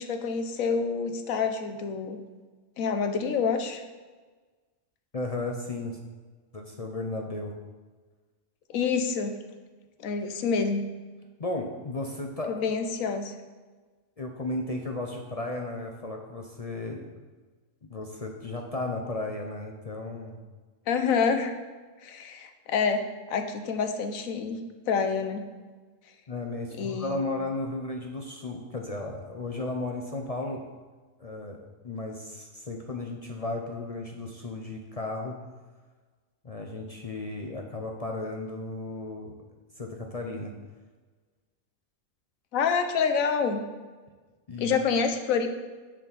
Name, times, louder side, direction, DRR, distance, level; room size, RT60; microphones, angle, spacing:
voice 1, 0.0-2.2 2.8-3.8 8.7-9.3 10.0-10.8 12.5-13.3 20.9-21.5 22.0-24.6 24.9-25.5 26.8-27.2 42.5-43.6 44.6-45.5, left 5 dB, 90° left, 7 dB, 1.2 m, -27 dB
voice 2, 5.1-6.0 6.5-7.5 11.4-12.6 14.2-17.1 17.8-20.4 26.3-30.6 31.2-35.4 36.4-39.4 39.8-40.5 44.5-44.8, left 2 dB, 40° left, 2 dB, 0.5 m, -34 dB
6.8 x 6.1 x 4.0 m, 1.4 s
omnidirectional pair, 1.4 m